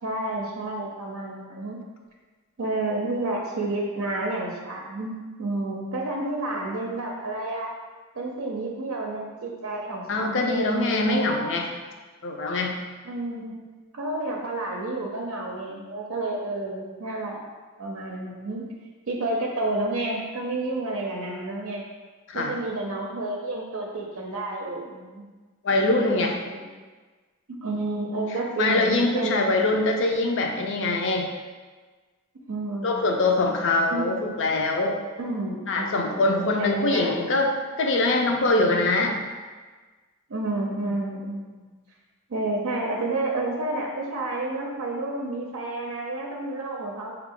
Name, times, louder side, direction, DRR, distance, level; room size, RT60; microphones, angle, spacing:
voice 1, 0.0-1.8 2.6-7.7 8.1-10.7 11.1-11.4 13.0-17.4 17.8-18.6 19.1-21.8 22.3-25.3 25.9-26.6 27.5-29.4 32.5-33.1 33.9-34.1 35.2-37.1 40.3-41.7 42.3-47.1, right 2 dB, 75° right, -1 dB, 0.5 m, -30 dB
voice 2, 10.1-11.7 12.2-12.8 22.3-22.5 25.6-26.4 28.6-31.3 32.8-35.0 35.7-39.2, left 2 dB, 60° left, 2 dB, 0.5 m, -23 dB
4.2 x 2.3 x 3.6 m, 1.4 s
head